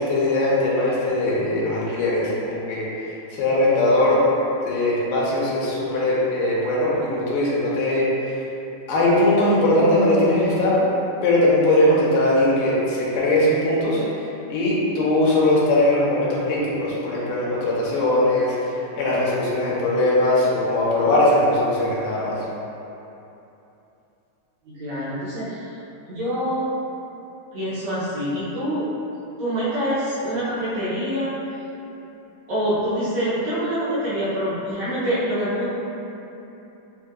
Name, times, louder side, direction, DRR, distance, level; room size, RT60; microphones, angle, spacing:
voice 1, 0.0-2.9 3.3-4.2 4.6-8.4 8.9-10.8 11.2-22.4, left 1 dB, 80° left, -6 dB, 2.3 m, -20 dB
voice 2, 24.7-25.6 26.1-26.7 27.5-28.9 29.4-31.3 32.5-35.7, equal, 70° right, -11 dB, 1.8 m, -25 dB
7.1 x 2.7 x 2.4 m, 2.9 s
omnidirectional pair, 3.7 m